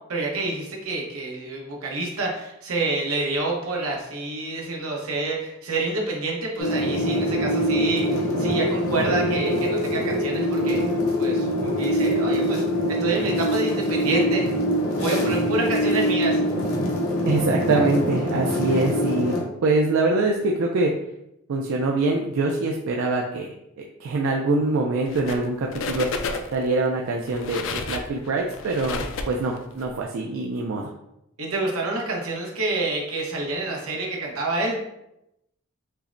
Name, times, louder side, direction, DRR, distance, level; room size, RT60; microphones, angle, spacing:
voice 1, 0.1-10.8 11.2-12.6 12.9-14.4 14.8-16.4 31.4-34.8, right 2 dB, 90° right, -1 dB, 0.9 m, -28 dB
sound 1, 6.6-19.4, equal, 85° left, 0.8 m, -24 dB
voice 2, 17.2-19.4 19.6-20.9 21.5-26.1 26.5-30.9, right 2 dB, 70° right, 0 dB, 0.4 m, -24 dB
sound 2, 25.0-25.5 25.7-26.7 27.2-29.9, left 4 dB, 60° left, 0.3 m, -31 dB
5.5 x 2.1 x 2.5 m, 0.83 s
head